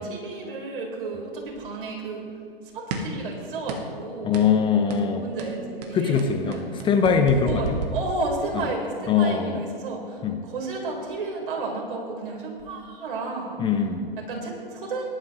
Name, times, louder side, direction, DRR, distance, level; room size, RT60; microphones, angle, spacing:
voice 1, 0.0-2.2 2.6-4.4 5.2-6.9 7.3-13.6 14.3-15.0, right 3 dB, 60° right, -1 dB, 3.8 m, -32 dB
sound 1, 2.9-3.2 3.7-4.0 4.3-4.5 4.9-5.1 5.4-8.7, right 4 dB, 40° right, 1.6 m, -33 dB
voice 2, 4.2-5.3 5.9-7.8 9.1-9.6 10.2-10.4 13.6-14.1, left 6 dB, 15° left, 6 dB, 0.6 m, -22 dB
19.5 x 11.5 x 3.0 m, 2.4 s
figure-of-eight pair, 115°, 30 cm